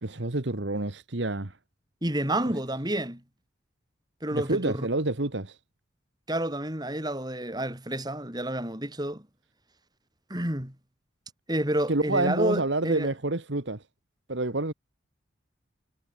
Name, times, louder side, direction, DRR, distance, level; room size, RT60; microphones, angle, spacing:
voice 1, 0.0-1.5 4.3-5.6 11.9-13.8 14.3-14.7, right 2 dB, 60° right, 1.6 m, -28 dB
voice 2, 2.0-3.2 4.2-4.9 6.3-9.3 10.3-10.8 11.5-13.1, right 1 dB, 20° right, 5.2 m, -29 dB
head